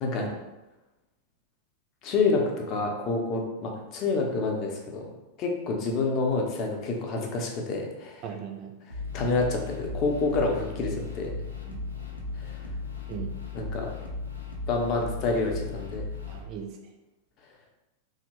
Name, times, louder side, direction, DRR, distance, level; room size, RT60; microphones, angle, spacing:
voice 1, 2.0-5.1 5.4-8.2 9.1-11.3 12.4-12.5 13.5-13.9 14.7-16.0, left 3 dB, 35° left, 1 dB, 0.5 m, -28 dB
voice 2, 8.2-8.7 11.0-11.1 11.4-11.8 13.1-13.3 16.3-16.7, right 8 dB, 40° right, 3 dB, 0.4 m, -38 dB
sound 1, 8.9-16.4, left 3 dB, 85° left, 0.5 m, -36 dB
2.8 x 2.1 x 2.9 m, 1.0 s
figure-of-eight pair, 90°, 0 cm